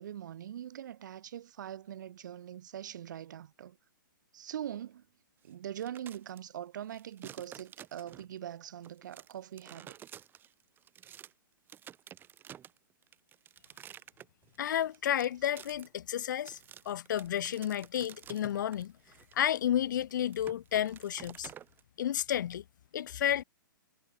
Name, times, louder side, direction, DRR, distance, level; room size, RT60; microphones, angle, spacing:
voice 1, 0.0-3.8 4.3-5.1 5.4-10.0, right 10 dB, 60° right, 2.1 m, -42 dB
sound 1, 5.6-6.4 6.8-8.4 8.8-11.3 11.7-21.8, right 10 dB, 20° right, 2.3 m, -51 dB
voice 2, 14.6-16.6 16.9-18.9 19.3-21.5 22.0-22.6 22.9-23.4, left 10 dB, 60° left, 0.6 m, -31 dB
hypercardioid pair, 135°, 11 cm